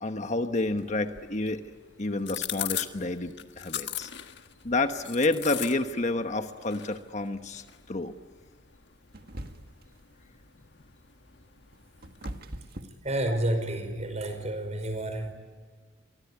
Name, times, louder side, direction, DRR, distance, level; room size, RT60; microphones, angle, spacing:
voice 1, 0.0-1.7 2.0-4.1 4.6-8.1, left 2 dB, 40° left, 7 dB, 1.2 m, -29 dB
sound 1, 0.8-12.4, left 11 dB, 65° left, 1.5 m, -41 dB
sound 2, 9.1-9.9 11.4-13.7, right 1 dB, 55° right, 1.8 m, -41 dB
voice 2, 13.0-15.3, right 1 dB, 40° right, 9 dB, 5.0 m, -30 dB
29.0 x 24.0 x 8.5 m, 1.5 s
head